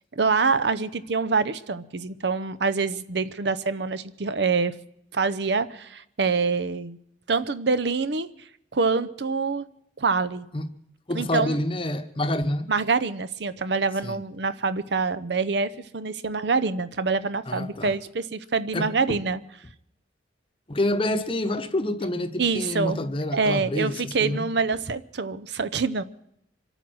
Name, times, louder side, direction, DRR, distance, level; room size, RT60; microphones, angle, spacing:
voice 1, 0.1-4.8 5.1-7.0 7.3-8.3 8.7-9.6 10.0-10.5 11.1-11.6 12.7-19.4 22.4-23.1 23.3-26.0, right 4 dB, 65° right, 0.7 m, -25 dB
voice 2, 11.1-12.7 14.0-14.2 17.5-18.0 18.7-19.2 20.7-24.5, left 1 dB, 30° left, 0.9 m, -28 dB
25.5 x 9.1 x 6.2 m
head